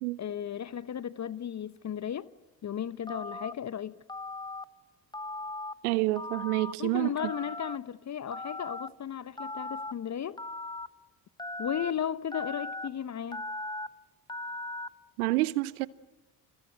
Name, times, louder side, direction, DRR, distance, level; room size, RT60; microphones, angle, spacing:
voice 1, 0.2-2.3 2.6-4.0 6.8-10.4 11.6-13.5, left 9 dB, 40° left, 0.9 m, -35 dB
Telephone, 3.1-3.5 4.1-4.6 5.1-5.7 6.2-6.7 7.2-7.8 8.3-8.9 9.4-9.9 10.4-10.9 11.4-11.9 12.3-12.9 13.3-13.9 14.3-14.9, left 2 dB, 10° left, 1.3 m, -38 dB
voice 2, 5.8-7.3 15.2-15.9, right 19 dB, 80° right, 1.0 m, -28 dB
29.5 x 24.5 x 7.9 m
hypercardioid pair, 50°, 44 cm